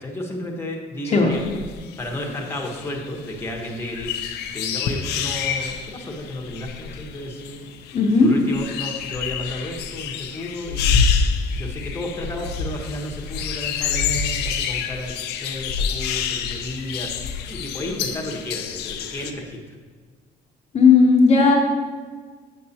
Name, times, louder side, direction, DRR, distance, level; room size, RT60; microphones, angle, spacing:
voice 1, 0.0-1.4 2.0-4.2 4.5-7.6 8.2-11.0 11.5-19.7, left 1 dB, 15° left, 0 dB, 1.2 m, -32 dB
sound 1, 1.3-19.3, left 6 dB, 80° left, 0.6 m, -27 dB
voice 2, 7.9-8.3 20.7-21.5, left 4 dB, 40° left, -1 dB, 0.9 m, -14 dB
7.5 x 6.6 x 2.8 m, 1.5 s
cardioid pair, 110°, 17 cm